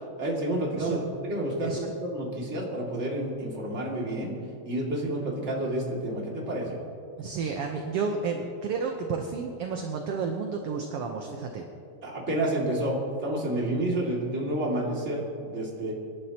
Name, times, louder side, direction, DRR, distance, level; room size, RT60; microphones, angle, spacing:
voice 1, 0.2-4.4 4.7-6.8 12.0-15.9, right 1 dB, 25° right, -3 dB, 2.3 m, -29 dB
voice 2, 1.6-2.0 7.2-11.6, right 5 dB, 65° right, 3 dB, 1.6 m, -31 dB
27.5 x 11.5 x 2.9 m, 2.4 s
omnidirectional pair, 3.5 m